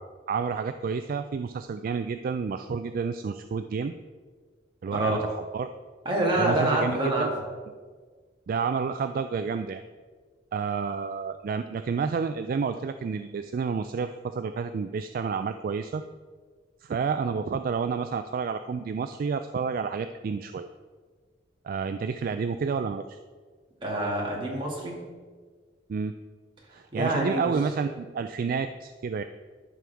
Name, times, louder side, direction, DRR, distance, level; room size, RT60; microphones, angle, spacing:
voice 1, 0.3-3.9 4.8-5.7 6.4-7.3 8.5-9.8 10.5-16.0 16.8-20.7 21.6-23.2 25.9-26.1 26.7-29.2, right 5 dB, 50° right, 9 dB, 0.3 m, -30 dB
voice 2, 6.0-7.3 23.8-25.0 27.0-27.5, right 1 dB, 30° right, -3 dB, 2.1 m, -26 dB
13.0 x 6.1 x 3.4 m, 1.5 s
head